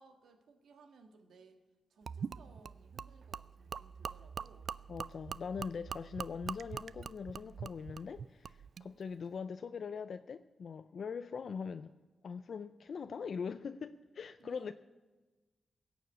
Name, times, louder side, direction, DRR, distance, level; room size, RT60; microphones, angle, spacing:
voice 1, 0.0-1.6 1.9-4.8 14.4-14.7, right 4 dB, 85° right, 1.7 m, -61 dB
Gurgling / Liquid, 2.1-8.9, right 6 dB, 65° right, 0.3 m, -44 dB
voice 2, 4.9-11.9 12.2-14.7, left 6 dB, 65° left, 0.4 m, -42 dB
17.5 x 7.2 x 8.3 m
cardioid pair, 95°, 0 cm